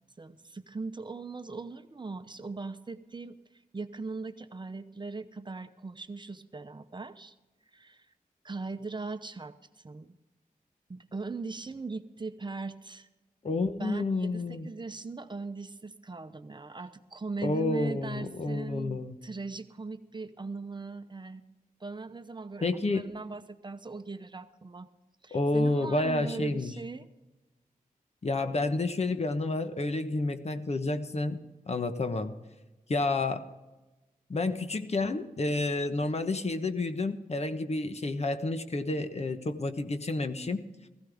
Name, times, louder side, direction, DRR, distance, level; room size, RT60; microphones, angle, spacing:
voice 1, 0.2-7.3 7.7-8.1 8.4-10.2 10.9-13.1 13.8-21.4 21.8-24.9 25.2-27.0, right 3 dB, 30° right, 10 dB, 0.8 m, -39 dB
voice 2, 13.4-14.7 17.4-19.2 22.6-23.0 25.3-26.7 28.2-32.4 32.9-33.5 34.3-40.7, left 2 dB, 45° left, 9 dB, 1.1 m, -30 dB
16.0 x 15.0 x 3.5 m, 1.1 s
cardioid pair, 65°, 15 cm